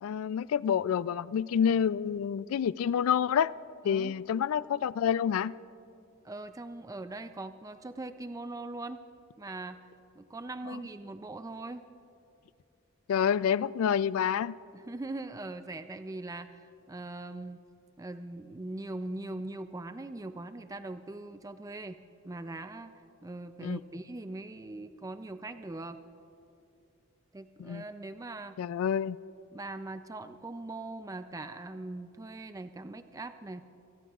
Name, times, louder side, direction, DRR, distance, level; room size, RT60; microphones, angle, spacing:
voice 1, 0.0-3.5 3.8-5.5 13.1-14.6 23.6-23.8 27.6-27.8 28.6-29.2, left 8 dB, 80° left, 20 dB, 0.3 m, -28 dB
voice 2, 3.8-4.1 6.2-9.0 9.4-9.8 10.2-11.8 14.7-17.6 18.0-22.0 22.2-22.9 23.2-26.0 27.3-28.6 29.5-33.6, right 2 dB, 15° right, 10 dB, 0.4 m, -41 dB
26.0 x 19.0 x 2.4 m, 2.6 s
head